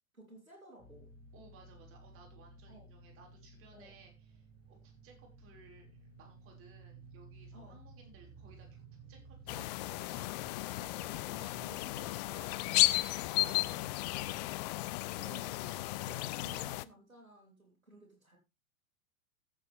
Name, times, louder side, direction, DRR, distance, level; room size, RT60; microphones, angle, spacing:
voice 1, 0.1-1.1 2.7-2.9 3.7-4.0 7.5-7.8 11.6-12.0 15.2-18.4, right 1 dB, 85° right, -4 dB, 3.9 m, -55 dB
sound 1, 0.8-13.8, right 3 dB, 10° right, 7.7 m, -56 dB
voice 2, 1.3-14.0 16.2-16.5, right 4 dB, 30° right, 1 dB, 5.6 m, -60 dB
sound 2, 9.5-16.8, left 19 dB, 30° left, 0.5 m, -34 dB
15.0 x 8.6 x 3.5 m, 0.26 s
figure-of-eight pair, 95°, 41 cm